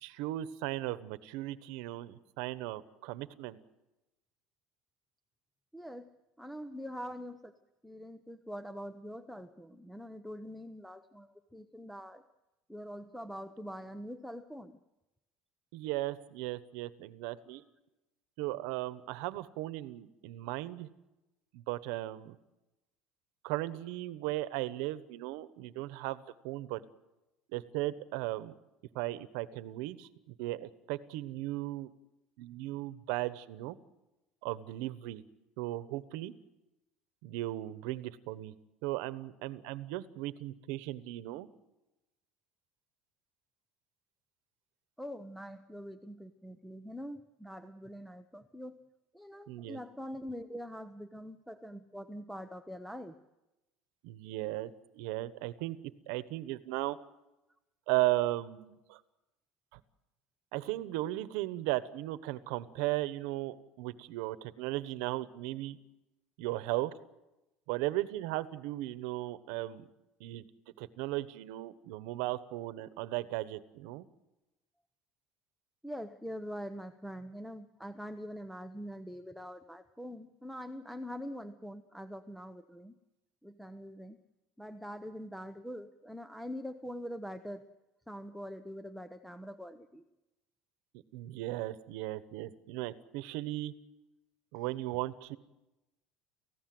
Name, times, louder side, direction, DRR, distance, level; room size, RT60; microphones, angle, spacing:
voice 1, 0.0-3.6 15.7-17.6 18.4-20.9 21.5-22.3 23.4-26.8 27.5-28.5 28.9-31.9 32.4-33.8 34.4-35.2 35.6-36.3 37.2-38.5 38.8-41.5 49.5-49.8 54.0-57.0 57.9-59.0 59.7-59.8 60.5-65.8 66.4-66.9 67.7-69.9 70.2-70.4 70.8-74.0 91.1-93.7 94.5-95.4, right 17 dB, 80° right, 14 dB, 1.1 m, -36 dB
voice 2, 5.7-6.1 6.4-7.5 7.8-12.2 12.7-14.8 45.0-48.8 49.1-53.1 75.8-83.0 83.4-84.2 84.6-87.6 88.1-90.0, equal, ahead, 6 dB, 0.8 m, -44 dB
30.0 x 16.0 x 7.8 m, 1.0 s
cardioid pair, 155°, 0 cm